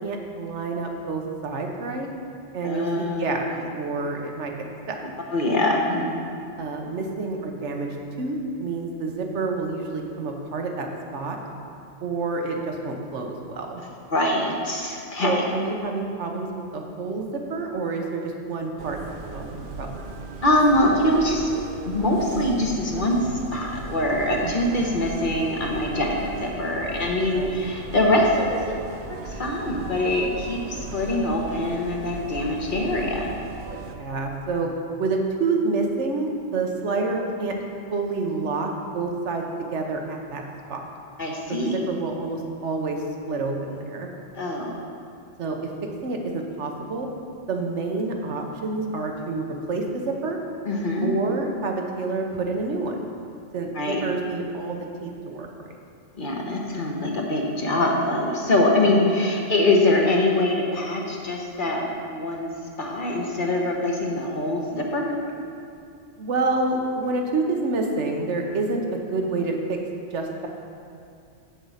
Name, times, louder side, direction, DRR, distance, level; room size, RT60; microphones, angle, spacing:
voice 1, 0.0-2.1 2.5-3.4 3.7-4.5 4.9-5.0 6.6-7.9 8.2-10.9 11.1-11.4 12.0-13.8 15.2-16.5 16.7-19.0 19.3-19.9 24.4-24.8 27.3-27.5 33.9-34.7 35.0-37.6 37.9-39.4 39.7-40.4 40.7-40.8 41.5-44.1 45.4-45.6 46.0-47.1 47.5-50.4 51.0-53.2 53.5-55.8 59.0-59.2 66.2-69.8 70.1-70.5, right 3 dB, 70° right, 2 dB, 1.3 m, -28 dB
voice 2, 2.6-3.6 5.3-6.2 14.1-15.4 20.4-21.5 21.8-28.8 29.1-33.3 41.2-41.8 44.3-44.7 50.6-51.1 53.7-54.0 56.2-62.5 62.8-65.2, left 1 dB, 45° left, -1 dB, 1.2 m, -23 dB
sound 1, 18.8-34.0, right 4 dB, 55° right, 0.8 m, -38 dB
7.7 x 7.1 x 5.7 m, 2.5 s
omnidirectional pair, 1.2 m